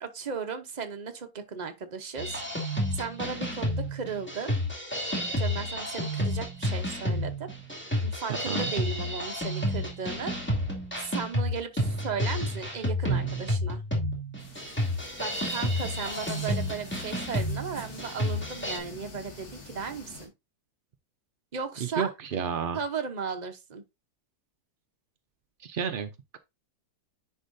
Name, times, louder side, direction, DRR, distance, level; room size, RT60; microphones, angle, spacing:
voice 1, 0.0-4.5 5.4-7.5 8.0-10.4 11.0-13.8 15.2-20.3 21.5-22.1 22.7-23.8, right 5 dB, 40° right, 0.7 m, -36 dB
sound 1, 2.2-18.8, equal, 5° left, 2.3 m, -30 dB
voice 2, 8.3-8.7 21.8-22.8 25.6-26.4, right 7 dB, 80° right, 0.4 m, -31 dB
sound 2, 14.4-20.3, left 3 dB, 65° left, 2.4 m, -46 dB
9.9 x 4.7 x 2.6 m
omnidirectional pair, 1.7 m